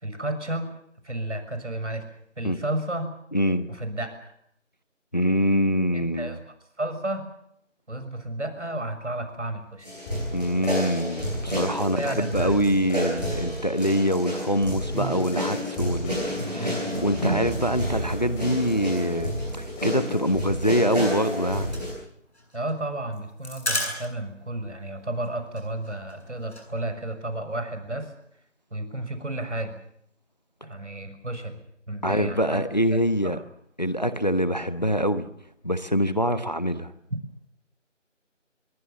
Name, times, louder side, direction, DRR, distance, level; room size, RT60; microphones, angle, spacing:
voice 1, 0.0-0.7 1.0-2.0 2.4-3.1 3.7-4.3 5.9-6.4 6.8-7.3 7.9-9.9 11.9-12.6 16.5-16.9 22.5-28.1 28.7-29.8 30.6-31.6 31.9-32.6 33.2-33.4, right 1 dB, 65° right, 9 dB, 6.6 m, -32 dB
voice 2, 3.3-3.7 5.1-6.4 10.3-21.7 32.0-33.4 33.8-35.3 35.6-36.9, equal, 35° left, 13 dB, 1.1 m, -25 dB
sound 1, 9.8-21.9, equal, 5° left, 4.9 m, -30 dB
sound 2, 21.6-24.4 24.7-24.8 25.1-25.3 25.6-26.7, left 1 dB, 60° left, 8.0 m, -33 dB
25.0 x 23.0 x 7.1 m, 0.70 s
figure-of-eight pair, 175°, 38 cm